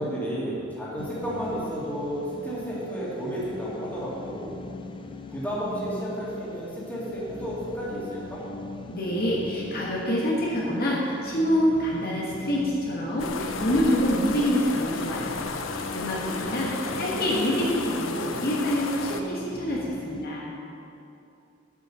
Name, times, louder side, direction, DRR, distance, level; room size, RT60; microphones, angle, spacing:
voice 1, 0.0-4.6 5.3-8.4 16.8-17.1, equal, 10° left, -8 dB, 2.5 m, -32 dB
sound 1, 1.0-20.3, left 2 dB, 25° left, 0.4 m, -41 dB
voice 2, 8.9-15.4 15.7-16.7 17.0-20.5, equal, 50° left, -4 dB, 1.4 m, -26 dB
sound 2, 13.2-19.2, left 4 dB, 80° left, 0.7 m, -33 dB
8.3 x 6.4 x 6.7 m, 2.7 s
head